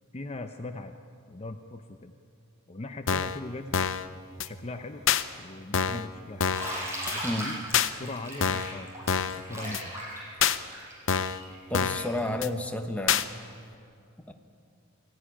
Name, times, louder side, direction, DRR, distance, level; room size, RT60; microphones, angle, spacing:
voice 1, 0.1-0.9 1.3-2.1 2.7-3.9 4.4-5.1 5.4-6.6 7.1-7.6 8.0-8.9 9.3-9.9, left 2 dB, 30° left, 6 dB, 0.7 m, -39 dB
sound 1, 3.1-3.4 3.7-4.1 4.4-4.5 5.1-5.2 5.7-6.1 6.4-6.7 7.1-7.2 7.7-7.9 8.4-8.7 9.1-9.4 9.7-9.8 10.4-10.6 11.1-11.4 11.7-12.1 12.4-12.5 13.1-13.2, left 7 dB, 60° left, 0.8 m, -26 dB
Bathtub (filling or washing), 6.5-12.2, equal, 15° right, 6.6 m, -37 dB
voice 2, 11.7-13.2 14.3-14.4, left 1 dB, 5° left, 4 dB, 1.1 m, -31 dB
22.5 x 15.5 x 10.0 m, 2.5 s
head